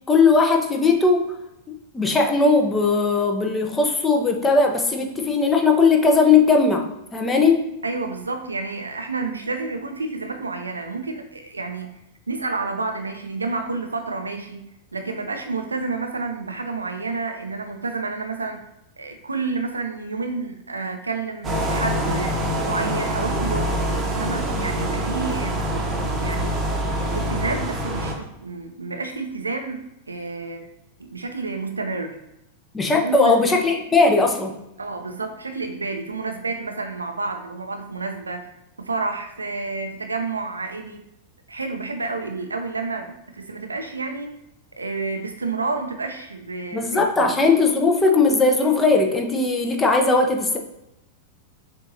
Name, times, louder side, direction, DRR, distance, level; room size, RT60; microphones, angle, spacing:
voice 1, 0.1-1.3 1.7-7.7 32.7-34.5 46.7-50.6, left 4 dB, 15° left, 3 dB, 0.8 m, -18 dB
voice 2, 7.8-12.0 12.3-18.6 19.0-22.4 22.7-23.8 24.1-25.6 26.2-26.6 27.1-30.6 31.0-32.2 33.0-33.6 34.8-38.5 38.8-41.0 41.5-44.3 44.8-47.4, right 3 dB, 85° right, 6 dB, 0.5 m, -30 dB
sound 1, 21.4-28.2, right 1 dB, 25° right, 1.0 m, -25 dB
6.6 x 2.6 x 2.8 m, 0.87 s
figure-of-eight pair, 95°, 0 cm